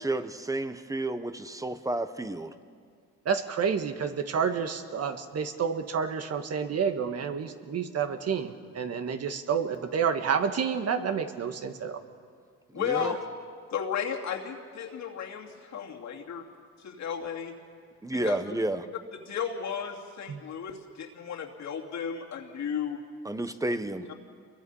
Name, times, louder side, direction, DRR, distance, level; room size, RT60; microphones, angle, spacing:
voice 1, 0.0-2.5 12.7-13.1 18.0-18.9 23.2-24.1, right 2 dB, 10° right, 11 dB, 1.2 m, -31 dB
voice 2, 3.2-12.0 13.0-13.2 20.3-20.4, right 6 dB, 55° right, 7 dB, 1.7 m, -29 dB
voice 3, 12.7-13.2 13.7-16.4 16.8-17.5 18.1-18.4 19.1-23.0, left 7 dB, 65° left, 1 dB, 2.6 m, -34 dB
28.5 x 22.5 x 5.7 m, 2.1 s
cardioid pair, 90°, 30 cm